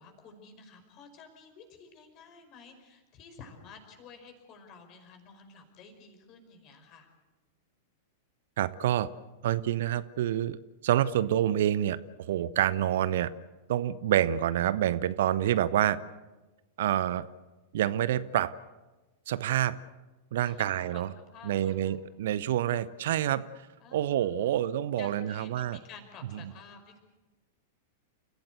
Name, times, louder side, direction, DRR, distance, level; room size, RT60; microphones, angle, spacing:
voice 1, 0.0-7.1 20.4-20.7 20.9-21.0 21.3-22.0 23.8-24.6 25.0-27.0, left 5 dB, 35° left, 6 dB, 5.2 m, -51 dB
voice 2, 8.6-9.1 9.4-10.6 10.8-13.3 13.7-16.0 16.8-17.3 17.7-18.6 19.3-19.8 20.3-21.1 21.4-23.5 23.9-25.8 26.3-26.5, right 11 dB, 55° right, 17 dB, 0.7 m, -27 dB
30.0 x 16.0 x 8.1 m, 1.2 s
figure-of-eight pair, 95°, 0 cm